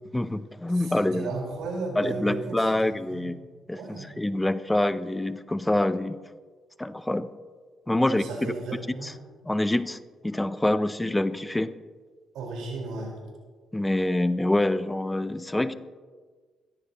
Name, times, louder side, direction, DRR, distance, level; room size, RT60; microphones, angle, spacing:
voice 1, 0.1-1.3 2.0-3.4 3.7-6.2 6.8-7.3 7.9-8.2 9.0-9.1 9.4-10.0 10.2-11.7 13.7-15.7, left 1 dB, 10° left, 13 dB, 0.5 m, -26 dB
voice 2, 0.7-3.3 3.7-4.1 8.0-9.2 12.3-13.1, right 3 dB, 90° right, -2 dB, 4.4 m, -35 dB
17.0 x 14.0 x 2.9 m, 1.5 s
cardioid pair, 90°, 0 cm